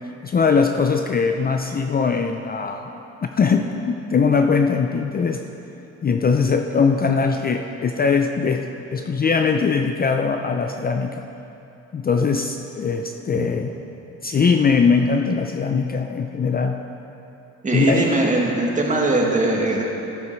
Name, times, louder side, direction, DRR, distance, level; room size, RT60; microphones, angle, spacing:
voice 1, 0.2-2.8 3.2-5.4 6.0-8.6 8.9-11.3 11.9-13.7 14.2-16.8 17.7-18.2, left 5 dB, 30° left, 5 dB, 0.5 m, -21 dB
voice 2, 17.6-19.8, right 2 dB, 25° right, -1 dB, 1.8 m, -20 dB
14.0 x 7.3 x 4.5 m, 3.0 s
cardioid pair, 90°, 30 cm